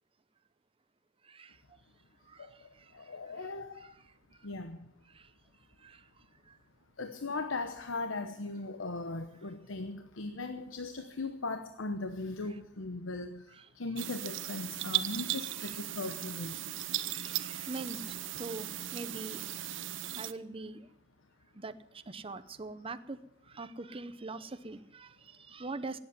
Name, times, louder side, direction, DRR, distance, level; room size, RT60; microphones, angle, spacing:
voice 1, 1.2-1.6 2.3-2.9 3.8-3.9 5.1-5.3 5.8-6.0 6.5-6.6 13.5-13.7 15.6-15.8 17.0-19.6 20.2-20.9 21.6-23.2 23.5-26.0, right 3 dB, 30° right, 0.8 m, -43 dB
voice 2, 3.0-3.8 4.4-4.8 7.0-13.4 13.8-16.5, left 3 dB, 90° left, 1.0 m, -38 dB
sound 1, 14.0-20.3, right 13 dB, 70° right, 0.7 m, -37 dB
18.5 x 8.3 x 9.5 m
head